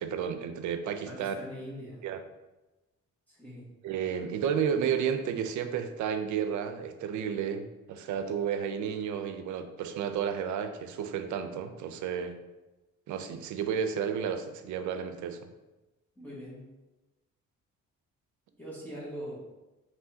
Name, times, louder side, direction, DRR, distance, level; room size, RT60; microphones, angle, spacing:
voice 1, 0.0-1.3 2.0-2.2 3.8-12.4 13.1-15.5, right 7 dB, 75° right, 8 dB, 0.5 m, -32 dB
voice 2, 1.1-2.0 3.3-3.7 16.2-16.6 18.6-19.5, equal, 5° left, -8 dB, 1.4 m, -42 dB
5.4 x 3.1 x 2.7 m, 1.1 s
cardioid pair, 90°, 30 cm